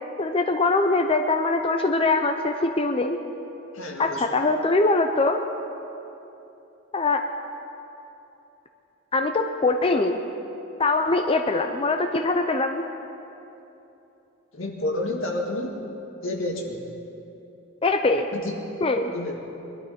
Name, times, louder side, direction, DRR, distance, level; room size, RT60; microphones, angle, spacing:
voice 1, 0.2-3.2 4.0-5.4 6.9-7.2 9.1-10.2 10.8-12.8 17.8-18.3 18.8-19.1, left 3 dB, 30° left, 5 dB, 0.6 m, -22 dB
voice 2, 3.7-4.3 14.5-15.8 16.2-16.8 18.3-18.7 19.1-19.4, left 1 dB, 80° left, 0 dB, 2.0 m, -30 dB
23.0 x 12.0 x 4.3 m, 2.9 s
head